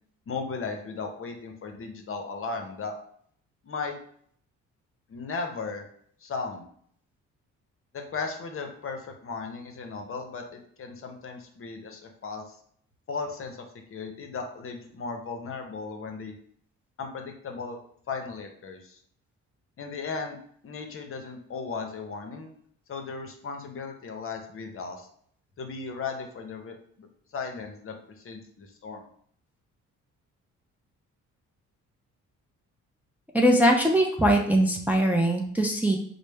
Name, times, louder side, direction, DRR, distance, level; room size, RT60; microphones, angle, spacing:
voice 1, 0.3-3.0 3.6-3.9 5.1-5.8 6.2-6.7 7.9-12.4 13.1-13.6 13.9-16.3 17.0-17.8 18.1-19.0 19.8-20.4 20.6-22.5 22.9-25.1 25.6-27.1 27.3-29.0, left 4 dB, 45° left, 4 dB, 0.7 m, -36 dB
voice 2, 33.3-36.0, right 1 dB, 5° right, 0 dB, 0.5 m, -21 dB
4.1 x 2.1 x 3.4 m, 0.62 s
cardioid pair, 90°, 30 cm